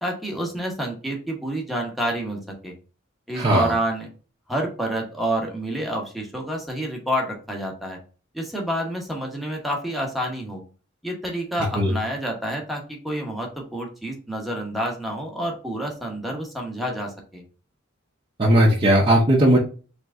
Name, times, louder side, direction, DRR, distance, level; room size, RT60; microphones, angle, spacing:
voice 1, 0.0-2.7 3.3-4.1 4.5-8.0 8.3-10.6 11.0-17.4, right 1 dB, ahead, 0 dB, 0.9 m, -28 dB
voice 2, 3.4-3.7 11.8-11.9 18.4-19.6, right 1 dB, 25° right, -4 dB, 0.7 m, -17 dB
3.3 x 3.0 x 3.6 m, 0.37 s
head